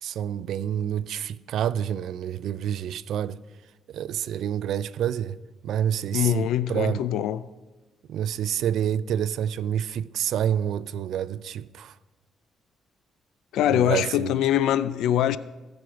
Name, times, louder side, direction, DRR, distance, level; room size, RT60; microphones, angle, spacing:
voice 1, 0.0-3.4 3.9-5.4 5.6-7.1 8.1-12.0 13.7-14.4, right 10 dB, 75° right, 0.3 m, -28 dB
voice 2, 6.1-7.5 13.5-15.4, left 11 dB, 85° left, 0.3 m, -23 dB
15.5 x 6.1 x 5.0 m
cardioid pair, 90°, 0 cm